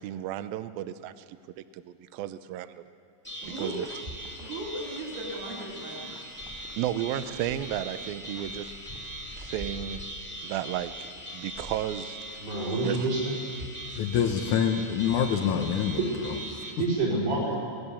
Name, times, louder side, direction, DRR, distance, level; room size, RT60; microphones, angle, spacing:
voice 1, 0.0-2.8 3.4-3.9 6.8-8.7 9.4-10.0 10.4-11.1 11.3-12.2 12.8-13.1, right 12 dB, 85° right, 12 dB, 2.1 m, -33 dB
sound 1, 3.2-16.7, right 1 dB, 5° left, 1.3 m, -41 dB
sound 2, 3.4-16.4, equal, 15° right, 2.3 m, -48 dB
voice 2, 3.4-3.9 4.4-6.2, right 1 dB, 45° right, -5 dB, 4.0 m, -37 dB
voice 3, 12.4-13.4 16.0-17.6, right 2 dB, 65° right, -4 dB, 7.2 m, -28 dB
voice 4, 13.9-16.6, left 8 dB, 85° left, 4 dB, 1.7 m, -26 dB
25.5 x 19.5 x 7.1 m, 2.2 s
omnidirectional pair, 5.1 m